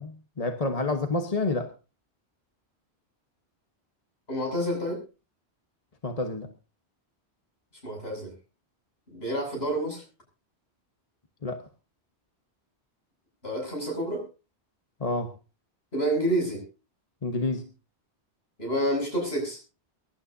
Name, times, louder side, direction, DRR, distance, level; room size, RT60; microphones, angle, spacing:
voice 1, 0.0-1.7 6.0-6.5 11.4-11.6 15.0-15.3 17.2-17.7, left 3 dB, 35° left, 6 dB, 1.3 m, -29 dB
voice 2, 4.3-5.0 7.8-8.3 9.1-10.0 13.4-14.2 15.9-16.6 18.6-19.6, right 1 dB, 65° left, 0 dB, 8.1 m, -28 dB
24.5 x 12.0 x 2.7 m, 0.32 s
omnidirectional pair, 1.1 m